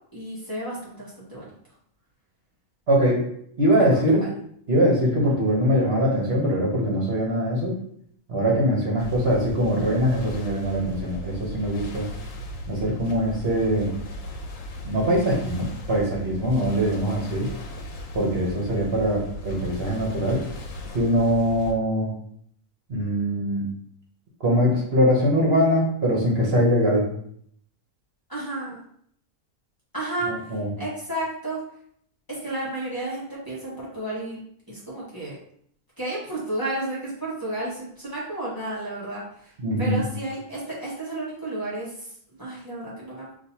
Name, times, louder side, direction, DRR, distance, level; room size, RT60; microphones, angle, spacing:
voice 1, 0.1-1.5 3.8-4.3 28.3-28.8 29.9-31.6 32.3-34.4 34.7-35.4 36.0-43.3, right 1 dB, 15° left, -7 dB, 1.4 m, -32 dB
voice 2, 2.9-3.3 3.6-4.2 4.7-7.7 8.3-12.1 12.7-13.9 14.8-17.5 18.1-20.4 20.9-22.1 22.9-23.7 24.4-27.1 30.3-30.7 39.6-40.1, equal, 50° right, -3 dB, 1.2 m, -22 dB
sound 1, 9.0-21.7, left 1 dB, 85° left, 1.1 m, -37 dB
6.3 x 2.7 x 2.8 m, 0.66 s
omnidirectional pair, 1.4 m